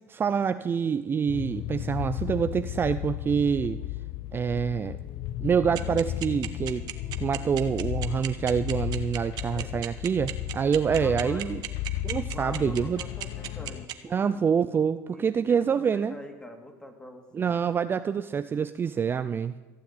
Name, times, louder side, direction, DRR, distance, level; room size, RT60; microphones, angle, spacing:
voice 1, 0.1-3.8 4.3-5.0 5.4-6.8 7.2-11.6 12.0-13.0 14.1-16.2 17.3-19.5, right 7 dB, 25° right, 11 dB, 0.5 m, -26 dB
sound 1, 1.3-13.8, left 12 dB, 65° left, 0.7 m, -34 dB
sound 2, 5.8-13.9, right 14 dB, 55° right, 1.2 m, -34 dB
voice 2, 9.4-9.9 10.9-11.5 12.3-14.4 15.1-17.6, left 1 dB, 10° left, 4 dB, 2.5 m, -45 dB
15.0 x 7.6 x 8.5 m, 1.3 s
supercardioid pair, 100°, 8 cm